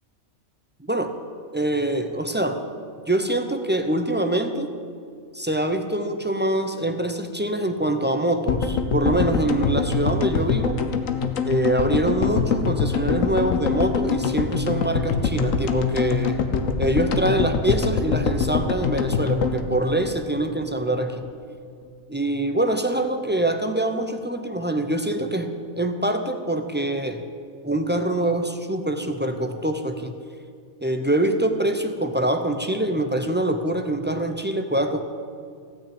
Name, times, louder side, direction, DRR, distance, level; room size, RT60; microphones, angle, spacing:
voice 1, 0.8-1.1 1.5-2.6 3.1-4.7 5.3-10.8 11.4-16.4 16.8-21.2 22.1-25.5 25.8-27.2 27.6-30.2 30.8-35.0, right 1 dB, 15° right, 6 dB, 0.4 m, -24 dB
sound 1, 8.5-20.7 21.0-21.1 21.2-21.3, left 6 dB, 75° left, 1.3 m, -24 dB
16.0 x 6.1 x 9.0 m, 2.3 s
omnidirectional pair, 1.4 m